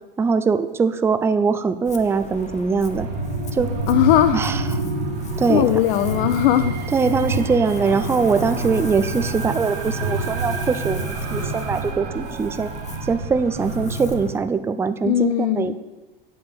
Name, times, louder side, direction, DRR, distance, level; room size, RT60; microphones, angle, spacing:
voice 1, 0.2-3.1 3.5-3.7 4.3-4.6 5.4-5.7 6.9-12.7 13.0-15.7, right 5 dB, 10° right, 11 dB, 0.4 m, -22 dB
Ocean, 1.8-14.4, left 6 dB, 25° left, 0.8 m, -41 dB
sound 1, 2.3-14.3, right 2 dB, 50° right, 1.6 m, -28 dB
voice 2, 3.9-4.4 5.5-6.8 15.0-15.7, left 12 dB, 60° left, 9 dB, 0.6 m, -19 dB
8.3 x 6.1 x 6.9 m, 1.1 s
hypercardioid pair, 100°, 29 cm